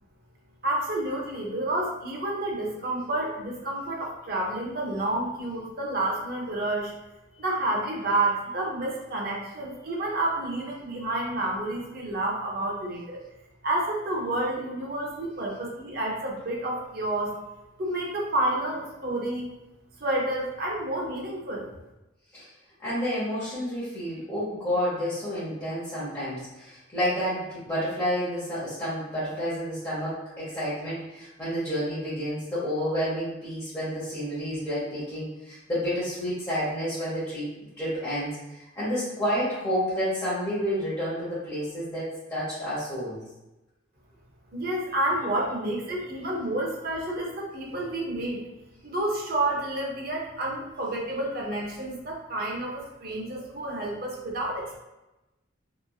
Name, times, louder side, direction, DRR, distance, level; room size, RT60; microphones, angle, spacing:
voice 1, 0.6-6.9 7.3-13.2 13.6-17.4 17.8-19.5 20.0-21.7 44.5-48.4 48.8-54.8, right 1 dB, 50° right, -1 dB, 0.7 m, -29 dB
voice 2, 22.8-37.5 37.8-43.2, equal, 15° left, -12 dB, 1.0 m, -30 dB
3.0 x 2.5 x 2.3 m, 1.0 s
head